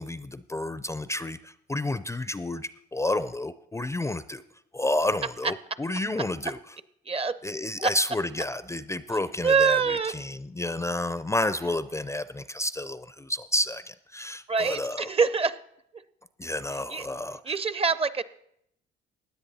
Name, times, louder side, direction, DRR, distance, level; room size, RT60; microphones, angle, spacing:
voice 1, 0.0-4.4 4.7-6.8 7.4-15.1 16.4-17.6, left 1 dB, 15° left, 14 dB, 0.4 m, -30 dB
voice 2, 7.1-7.4 7.8-7.9 9.4-10.1 14.5-15.6 16.9-17.0 17.5-18.2, right 5 dB, 30° right, 16 dB, 0.6 m, -24 dB
16.0 x 9.8 x 4.1 m, 0.74 s
cardioid pair, 90°, 20 cm